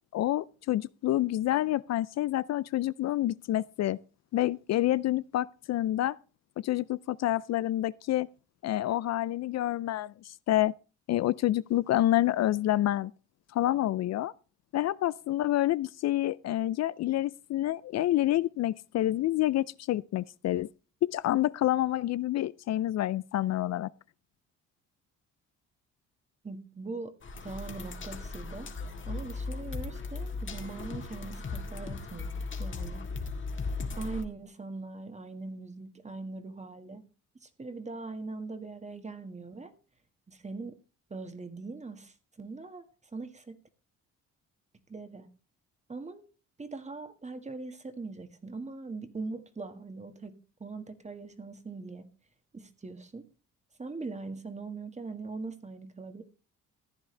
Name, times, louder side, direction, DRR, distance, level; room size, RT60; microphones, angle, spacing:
voice 1, 0.1-4.0 4.3-6.2 6.6-8.3 8.6-10.7 11.1-13.1 13.5-14.3 14.7-20.7 21.0-23.9, left 14 dB, 60° left, 0.4 m, -28 dB
voice 2, 26.4-27.1 27.4-28.7 29.1-33.1 33.9-37.0 37.4-39.7 40.3-40.7 41.1-42.9 43.1-43.6 44.9-45.3 45.9-46.2 46.6-50.3 50.6-52.1 52.5-53.3 53.8-56.2, right 3 dB, 25° right, 1.8 m, -41 dB
sound 1, 27.2-34.2, left 3 dB, 40° left, 1.9 m, -37 dB
14.5 x 9.6 x 3.3 m
cardioid pair, 90°, 30 cm